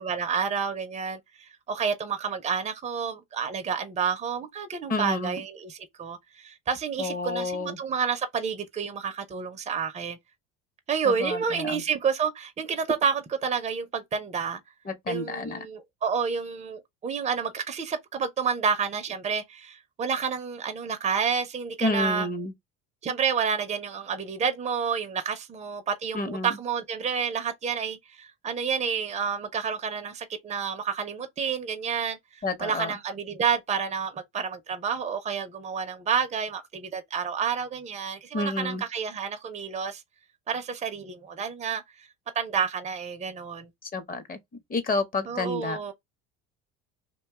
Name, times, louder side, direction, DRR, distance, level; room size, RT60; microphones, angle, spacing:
voice 1, 0.0-10.2 10.9-14.6 15.1-22.3 23.0-40.0 40.5-42.1 42.3-43.7 45.3-45.9, right 6 dB, 20° right, 0.6 m, -29 dB
voice 2, 4.9-5.4 7.0-7.8 11.0-11.8 14.8-15.7 21.8-22.5 26.1-26.6 32.4-33.0 38.3-38.8 43.8-44.4 44.7-45.8, left 2 dB, 30° left, 0.8 m, -30 dB
2.5 x 2.2 x 3.5 m
supercardioid pair, 90°, 31 cm